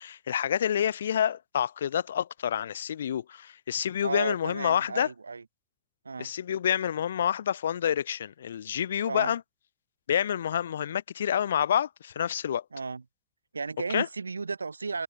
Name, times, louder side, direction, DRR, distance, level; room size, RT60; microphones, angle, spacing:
voice 1, 0.0-5.1 6.2-9.4 10.1-12.6 13.9-14.1, left 9 dB, 65° left, 4.9 m, -28 dB
voice 2, 4.0-5.4 6.1-6.3 9.0-9.3 12.7-13.0 13.5-15.0, right 4 dB, 75° right, 5.4 m, -34 dB
figure-of-eight pair, 90°, 0 cm